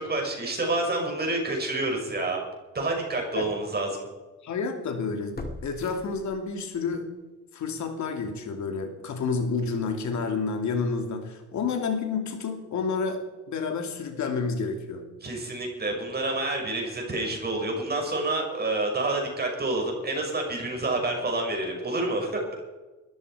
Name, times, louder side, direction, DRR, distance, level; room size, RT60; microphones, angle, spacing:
voice 1, 0.0-2.4 2.7-4.0 15.2-22.4, right 2 dB, 30° right, 0 dB, 6.2 m, -28 dB
sound 1, 2.1-2.2 2.8-2.9 5.3-6.8 7.2-7.3, left 2 dB, 30° left, 2.3 m, -40 dB
voice 2, 4.4-5.4 5.6-7.1 7.5-13.2 13.5-15.1, left 4 dB, 70° left, 6 dB, 2.8 m, -29 dB
20.5 x 14.0 x 5.0 m, 1.2 s
cardioid pair, 90°, 30 cm